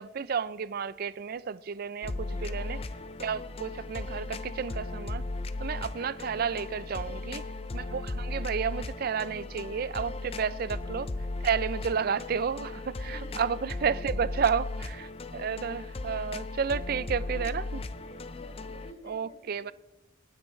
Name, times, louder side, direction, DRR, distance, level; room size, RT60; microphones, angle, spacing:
voice 1, 0.0-2.8 3.2-5.2 5.6-7.4 7.7-11.1 11.4-17.8 19.0-19.7, right 6 dB, 50° right, 0.4 m, -31 dB
sound 1, 2.0-18.9, left 2 dB, 30° left, 0.5 m, -37 dB
voice 2, 2.4-2.8 7.1-7.6 10.5-10.6 13.1-13.5 14.4-14.5 16.6-16.9 17.2-17.7 18.0-19.7, right 1 dB, 50° left, 5.8 m, -53 dB
26.5 x 9.6 x 3.2 m
head